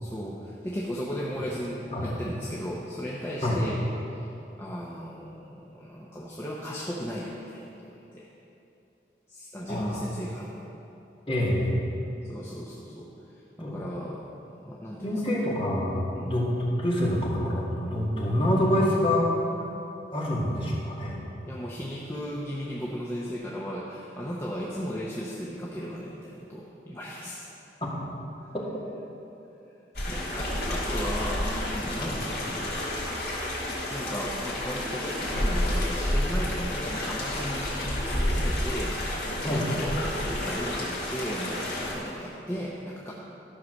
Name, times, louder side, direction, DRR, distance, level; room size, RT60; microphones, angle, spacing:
voice 1, 0.0-3.8 4.1-4.3 4.6-8.3 9.3-10.6 12.2-15.4 16.1-16.3 21.4-27.5 30.1-32.7 33.9-43.1, equal, 15° left, -4 dB, 0.8 m, -36 dB
voice 2, 9.7-10.0 11.3-11.7 13.6-13.8 15.0-19.4 20.1-21.2 27.8-27.9 28.5-28.7 32.1-32.2 39.4-39.7, left 1 dB, 30° left, -5 dB, 2.0 m, -26 dB
sound 1, 30.0-41.9, left 1 dB, 60° left, 2.5 m, -30 dB
12.5 x 5.8 x 6.4 m, 2.9 s
head